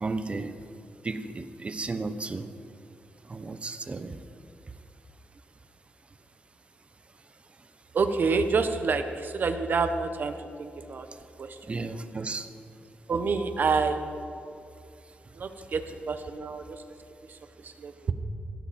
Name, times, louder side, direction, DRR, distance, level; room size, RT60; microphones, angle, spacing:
voice 1, 0.0-0.5 1.0-2.5 3.3-4.2 11.7-12.5, right 3 dB, 30° right, 10 dB, 0.9 m, -33 dB
voice 2, 7.9-11.1 11.4-11.8 13.1-14.4 15.3-16.8 17.2-18.1, right 4 dB, 55° right, 8 dB, 1.2 m, -28 dB
17.0 x 16.0 x 4.4 m, 2.5 s
cardioid pair, 105°, 4 cm